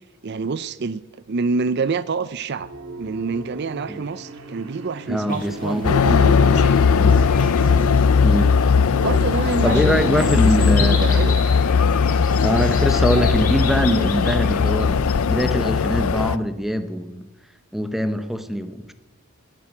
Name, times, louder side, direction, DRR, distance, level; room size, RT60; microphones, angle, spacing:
voice 1, 0.2-1.0 1.3-2.7 3.0-6.9 8.9-11.4, right 4 dB, 50° right, 0.5 m, -27 dB
sound 1, 2.6-8.0, right 3 dB, 75° right, 1.9 m, -36 dB
voice 2, 5.1-5.8 7.0-7.3 8.2-8.6 9.6-11.2 12.4-15.0 15.3-17.3 17.7-18.9, equal, ahead, 0.8 m, -23 dB
sound 2, 5.3-15.9, left 5 dB, 40° left, 2.0 m, -36 dB
sound 3, 5.8-16.4, left 5 dB, 75° left, 0.5 m, -18 dB
14.0 x 10.5 x 8.8 m
head